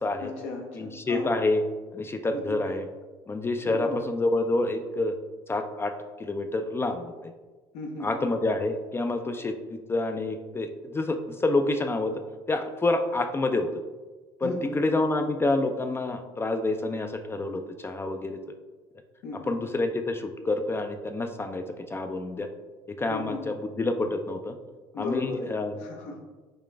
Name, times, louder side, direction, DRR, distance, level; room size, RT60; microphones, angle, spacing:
voice 1, 0.2-1.3 2.3-2.6 3.7-4.0 7.7-8.3 14.4-14.8 19.2-19.5 23.1-23.5 24.9-25.5 25.8-26.4, left 3 dB, 70° left, 1 dB, 0.6 m, -36 dB
voice 2, 0.8-1.6 1.9-2.9 3.3-5.1 5.5-5.9 6.2-7.3 8.0-12.1 12.5-13.7 14.4-18.4 19.5-22.5 23.0-24.5 25.0-25.7, left 2 dB, 20° left, 6 dB, 0.3 m, -28 dB
4.0 x 2.4 x 3.2 m, 1.3 s
supercardioid pair, 75°, 12 cm